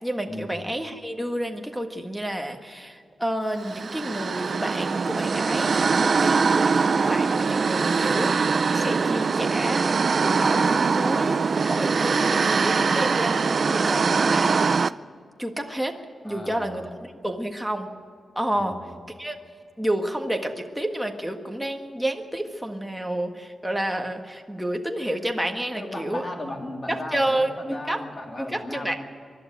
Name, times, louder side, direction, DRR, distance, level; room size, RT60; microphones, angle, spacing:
voice 1, 0.0-8.4 8.7-11.4 11.6-14.8 15.4-16.0 16.2-17.9 18.3-18.8 19.2-19.4 19.8-26.2 26.9-28.0 28.4-29.0, right 1 dB, ahead, 3 dB, 1.6 m, -29 dB
sound 1, 3.6-14.9, right 5 dB, 50° right, 0.5 m, -22 dB
voice 2, 16.2-16.9 18.6-19.0 25.7-29.0, left 1 dB, 30° left, 2 dB, 3.2 m, -36 dB
24.5 x 12.0 x 9.2 m, 2.3 s
wide cardioid pair, 110°, 0 cm